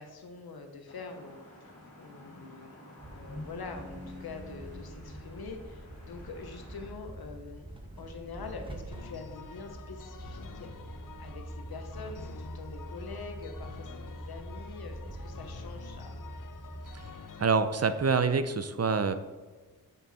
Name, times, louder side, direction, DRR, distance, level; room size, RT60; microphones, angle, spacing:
voice 1, 0.0-1.7 2.0-7.7 8.0-16.2, left 4 dB, 85° left, 5 dB, 1.1 m, -45 dB
sound 1, 0.9-6.9, left 2 dB, 40° left, 2.4 m, -49 dB
sound 2, 3.0-17.1, right 1 dB, 15° right, 1.1 m, -44 dB
sound 3, 8.9-17.5, left 6 dB, 60° left, 0.6 m, -49 dB
voice 2, 17.4-19.1, right 5 dB, 45° right, 11 dB, 0.6 m, -26 dB
6.8 x 6.0 x 4.2 m, 1.3 s
cardioid pair, 55°, 36 cm